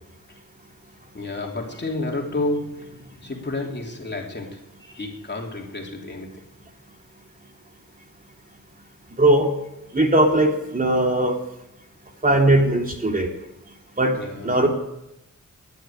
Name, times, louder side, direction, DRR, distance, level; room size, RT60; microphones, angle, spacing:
voice 1, 1.1-6.5 14.2-14.6, left 2 dB, 35° left, 1 dB, 3.1 m, -31 dB
voice 2, 9.2-9.5 9.9-11.4 12.2-13.3 14.0-14.2 14.4-14.7, right 1 dB, 25° right, 1 dB, 3.0 m, -19 dB
15.0 x 11.0 x 9.1 m, 0.87 s
wide cardioid pair, 90°, 32 cm